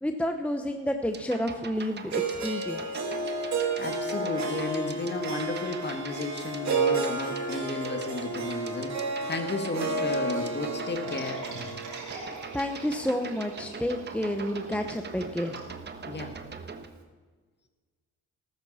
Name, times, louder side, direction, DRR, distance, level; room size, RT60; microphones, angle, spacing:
voice 1, 0.0-3.1 12.5-15.6, left 1 dB, 5° left, 6 dB, 0.9 m, -30 dB
sound 1, 1.0-16.9, right 5 dB, 35° right, 1.3 m, -43 dB
Harp, 2.1-14.2, right 3 dB, 65° right, 2.4 m, -32 dB
voice 2, 3.8-11.4 16.1-16.3, left 3 dB, 35° left, 5 dB, 1.9 m, -34 dB
sound 2, 11.0-16.3, right 2 dB, 85° right, 4.8 m, -44 dB
14.0 x 13.0 x 4.3 m, 1.4 s
cardioid pair, 90°, 30 cm